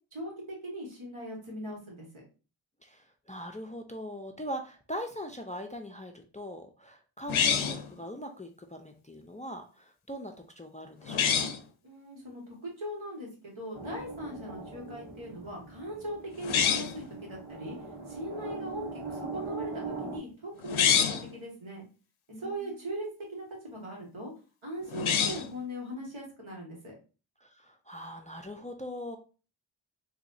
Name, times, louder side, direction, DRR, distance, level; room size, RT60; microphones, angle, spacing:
voice 1, 0.1-2.2 11.8-17.8 18.1-21.8 22.4-24.3 24.6-27.0, equal, 70° right, -2 dB, 1.7 m, -40 dB
voice 2, 2.8-11.5 22.3-22.7 27.4-29.2, equal, 15° left, 4 dB, 0.4 m, -41 dB
sound 1, 7.3-7.9 11.1-11.6 16.4-17.0 20.6-21.3 24.9-25.5, left 7 dB, 75° left, 0.6 m, -26 dB
sound 2, 13.7-20.2, right 4 dB, 90° right, 1.3 m, -41 dB
4.0 x 2.7 x 2.6 m, 0.34 s
wide cardioid pair, 50°, 50 cm